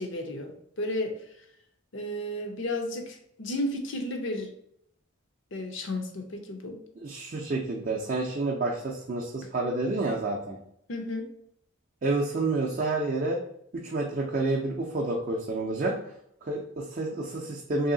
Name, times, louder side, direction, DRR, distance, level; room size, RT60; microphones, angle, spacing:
voice 1, 0.0-1.5 1.9-4.5 5.5-6.8 10.9-11.3, left 1 dB, 60° left, 5 dB, 0.6 m, -33 dB
voice 2, 7.0-10.6 12.0-13.4 13.7-16.0 16.4-17.9, right 2 dB, 40° right, -2 dB, 0.4 m, -29 dB
3.1 x 2.7 x 3.8 m, 0.71 s
head